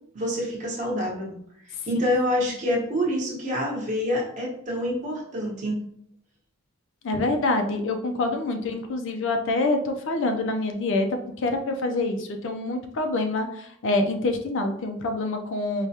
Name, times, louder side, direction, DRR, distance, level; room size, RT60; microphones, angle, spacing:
voice 1, 0.1-1.3 1.9-5.8, left 1 dB, 35° right, -3 dB, 1.0 m, -26 dB
voice 2, 7.0-15.9, left 2 dB, 60° left, 5 dB, 0.5 m, -26 dB
4.7 x 2.2 x 2.7 m, 0.68 s
head